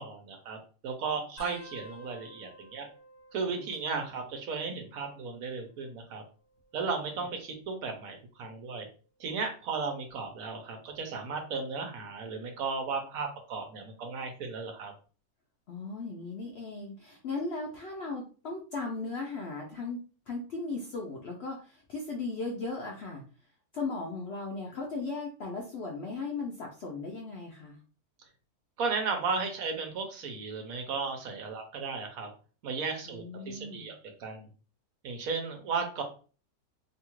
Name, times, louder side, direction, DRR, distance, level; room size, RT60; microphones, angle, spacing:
voice 1, 0.0-2.9 3.3-6.2 6.7-8.9 9.2-14.9 28.8-32.3 32.6-34.5 35.0-36.0, right 4 dB, 70° right, 4 dB, 1.0 m, -35 dB
sound 1, 1.4-4.6 4.8-5.4 6.4-7.9 8.5-8.9 10.1-10.4 11.9-12.0, equal, 50° left, 1.0 m, -53 dB
voice 2, 3.5-4.0 15.7-23.2 23.7-27.8 33.1-33.9, left 3 dB, 65° left, -1 dB, 0.6 m, -37 dB
2.8 x 2.3 x 2.9 m, 0.37 s
omnidirectional pair, 1.6 m